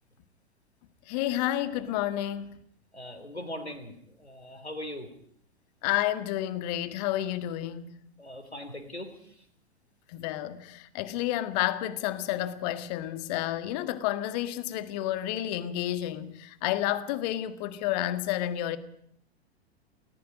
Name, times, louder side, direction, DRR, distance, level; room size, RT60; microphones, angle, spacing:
voice 1, 1.1-2.6 5.8-7.9 10.1-18.8, left 13 dB, 40° left, 12 dB, 1.8 m, -30 dB
voice 2, 2.9-5.1 8.2-9.1, left 1 dB, 90° left, 6 dB, 3.4 m, -40 dB
29.0 x 19.0 x 5.2 m, 0.65 s
figure-of-eight pair, 100°, 32 cm